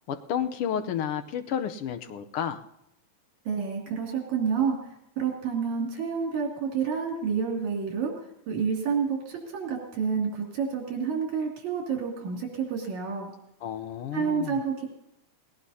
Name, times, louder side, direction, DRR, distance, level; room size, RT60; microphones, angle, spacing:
voice 1, 0.1-2.6 13.6-14.6, left 9 dB, 80° left, 8 dB, 1.2 m, -31 dB
voice 2, 3.5-4.8 5.2-8.1 8.5-13.3 14.1-14.9, right 6 dB, 70° right, -1 dB, 3.9 m, -29 dB
20.0 x 18.0 x 2.8 m, 0.83 s
omnidirectional pair, 3.5 m